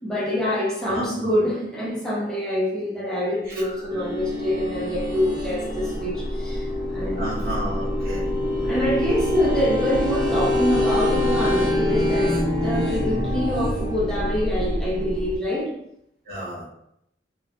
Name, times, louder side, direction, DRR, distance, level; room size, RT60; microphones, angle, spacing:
voice 1, 0.0-6.7 6.9-7.4 8.6-15.7, equal, 5° left, -7 dB, 0.9 m, -25 dB
voice 2, 0.8-1.3 3.5-3.6 7.2-8.3 16.2-16.6, right 1 dB, 55° right, -9 dB, 1.3 m, -32 dB
sound 1, 3.5-15.4, equal, 40° left, 0.5 m, -30 dB
sound 2, 3.9-13.9, left 2 dB, 20° right, 0.7 m, -26 dB
3.1 x 3.1 x 2.5 m, 0.76 s
head